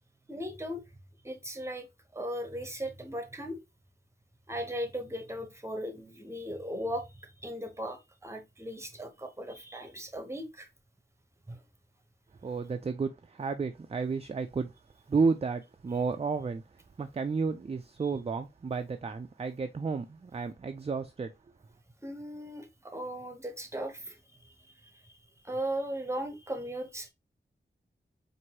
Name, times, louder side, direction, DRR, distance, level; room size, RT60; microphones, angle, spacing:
voice 1, 0.3-0.8 1.2-1.9 2.1-3.6 4.5-10.7 11.5-11.6 22.0-25.2 25.4-27.1, equal, 15° right, 0.8 m, -38 dB
voice 2, 12.4-14.7 15.1-21.3, right 4 dB, 30° right, 0.3 m, -32 dB
4.5 x 2.6 x 2.8 m
wide cardioid pair, 75°, 20 cm